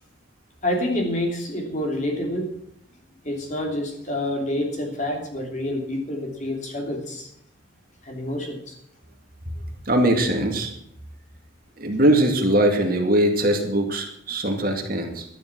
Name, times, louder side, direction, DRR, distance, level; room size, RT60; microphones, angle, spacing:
voice 1, 0.6-2.5 3.2-7.3 8.0-8.7, left 1 dB, 40° left, 2 dB, 3.1 m, -27 dB
voice 2, 9.9-10.7 11.8-15.3, right 1 dB, 45° right, 3 dB, 2.2 m, -21 dB
12.5 x 10.5 x 6.1 m, 0.72 s
head